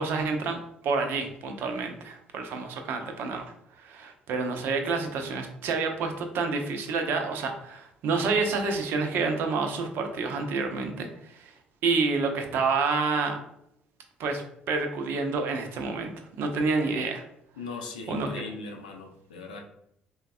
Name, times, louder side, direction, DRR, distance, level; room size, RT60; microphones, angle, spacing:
voice 1, 0.0-3.5 3.8-11.5 11.8-13.4 14.2-16.1 16.4-17.2 18.1-18.5, right 4 dB, 55° right, 5 dB, 0.5 m, -28 dB
voice 2, 17.6-19.6, left 3 dB, 80° left, 1 dB, 0.5 m, -39 dB
3.9 x 2.1 x 2.4 m, 0.75 s
figure-of-eight pair, 50°, 4 cm